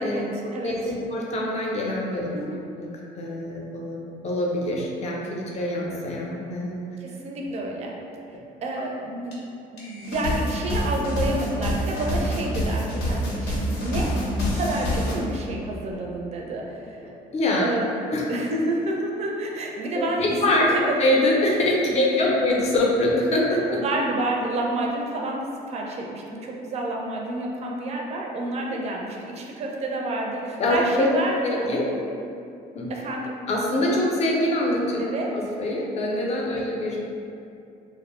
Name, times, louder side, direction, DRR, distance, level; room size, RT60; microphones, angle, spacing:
voice 1, 0.0-0.9 2.3-2.6 7.0-7.9 8.6-9.4 9.7-17.0 17.6-17.9 18.3-21.0 21.9-22.4 23.5-31.7 32.9-33.4 35.0-35.5 36.6-36.7, right 2 dB, 40° right, -1 dB, 0.4 m, -29 dB
voice 2, 0.5-2.3 2.8-2.9 3.2-6.8 17.3-17.7 18.1-18.2 19.9-20.7 21.0-23.8 28.7-28.8 30.6-31.1 31.4-31.9 32.7-32.9 33.5-35.0 35.3-37.0, left 1 dB, 40° left, -2 dB, 0.5 m, -24 dB
sound 1, 9.3-9.4 9.8-15.1, equal, 85° left, 0.7 m, -27 dB
2.6 x 2.0 x 3.0 m, 2.6 s
cardioid pair, 110°, 17 cm